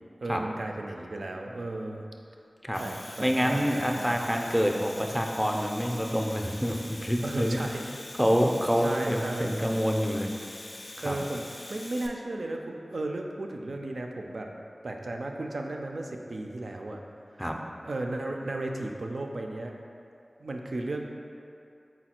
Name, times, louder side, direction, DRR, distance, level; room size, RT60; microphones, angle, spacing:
voice 1, 0.2-2.0 2.8-4.2 7.2-7.8 8.8-9.5 11.0-11.4 11.7-14.5 14.8-17.0 17.8-19.8 20.4-21.1, right 2 dB, 80° right, 2 dB, 0.3 m, -34 dB
Domestic sounds home sounds, 2.6-12.1, left 2 dB, 80° left, 0.3 m, -44 dB
voice 2, 3.2-7.6 8.2-10.3 11.0-11.2 17.4-17.6, equal, ahead, 1 dB, 0.4 m, -27 dB
4.2 x 2.3 x 4.2 m, 2.6 s
wide cardioid pair, 50°, 0 cm